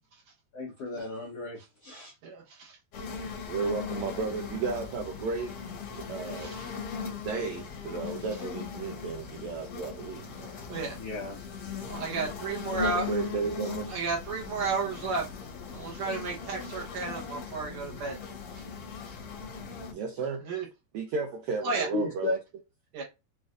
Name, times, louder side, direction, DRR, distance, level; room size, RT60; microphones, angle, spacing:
voice 1, 0.5-2.1 10.9-11.4 12.1-12.2 21.9-22.4, left 2 dB, 75° left, 1.4 m, -34 dB
voice 2, 2.2-2.8 6.3-6.7 10.7-11.0 11.9-13.1 13.9-15.3 15.7-18.2 18.5-18.6 20.5-20.7 21.6-21.9 22.9-23.0, right 4 dB, 65° right, 2.0 m, -33 dB
sound 1, 2.9-19.9, left 5 dB, 60° left, 1.6 m, -39 dB
voice 3, 3.5-5.6 6.0-6.6 7.2-10.5 12.7-13.9 19.9-20.4 20.9-22.4, right 4 dB, 85° right, 1.6 m, -33 dB
6.3 x 2.5 x 2.4 m
omnidirectional pair, 3.9 m